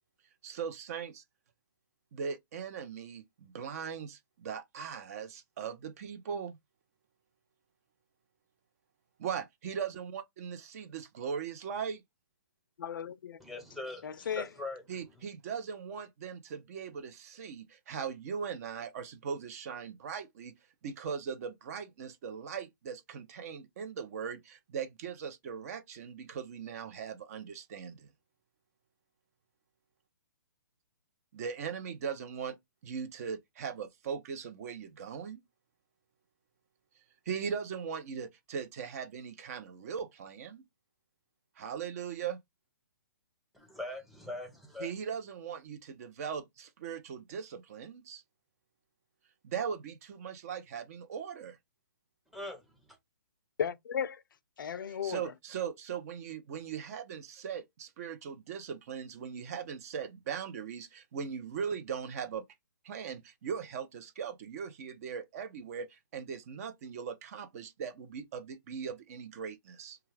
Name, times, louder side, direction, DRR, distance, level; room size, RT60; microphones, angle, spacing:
voice 1, 0.4-1.2 2.1-6.6 9.2-12.0 14.9-20.5 20.8-28.1 31.3-32.6 32.8-35.4 37.3-40.6 41.6-42.4 44.8-48.2 49.4-51.6 54.9-62.4 62.8-70.0, right 7 dB, 45° right, 0.6 m, -39 dB
voice 2, 12.8-13.4 14.0-14.5 53.6-54.2 54.6-55.2, left 8 dB, 70° left, 0.4 m, -35 dB
voice 3, 13.4-14.8 43.5-44.5 44.7-44.9 52.3-52.6, left 2 dB, ahead, 0.7 m, -41 dB
2.3 x 2.3 x 3.2 m
hypercardioid pair, 140°, 11 cm